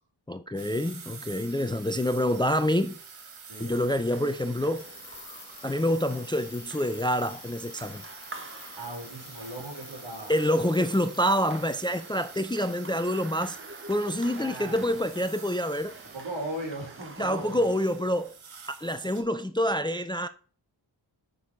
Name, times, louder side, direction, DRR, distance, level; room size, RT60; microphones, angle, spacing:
voice 1, 0.3-3.0 3.6-4.9 5.6-8.0 10.3-13.6 13.9-15.9 17.2-18.3 18.7-20.3, equal, 10° left, 0.5 m, -27 dB
sound 1, 0.6-19.2, right 5 dB, 90° right, 1.9 m, -48 dB
sound 2, 3.5-18.4, right 2 dB, 25° right, 1.2 m, -48 dB
sound 3, 4.7-11.4, left 7 dB, 55° left, 1.2 m, -50 dB
voice 2, 8.7-10.3 14.3-14.8 16.1-17.7, right 1 dB, 65° right, 4.4 m, -38 dB
7.2 x 6.3 x 5.2 m
wide cardioid pair, 75°, 47 cm